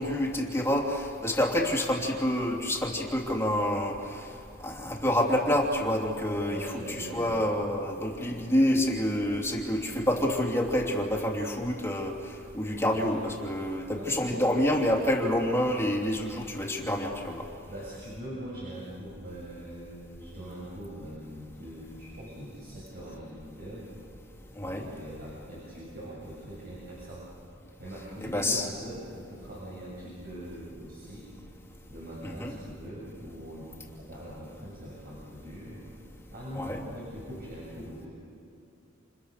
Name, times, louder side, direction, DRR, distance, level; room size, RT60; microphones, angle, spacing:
voice 1, 0.0-4.2 4.6-6.7 7.0-17.5 24.5-24.9 28.2-28.7 32.2-32.6 36.5-36.8, left 1 dB, 15° left, 0 dB, 3.0 m, -28 dB
voice 2, 6.5-7.5 12.9-13.2 13.9-14.5 17.7-23.9 24.6-27.3 27.8-31.3 31.9-35.8 36.3-38.1, right 1 dB, 50° right, -5 dB, 7.2 m, -42 dB
29.0 x 29.0 x 6.7 m, 2.5 s
head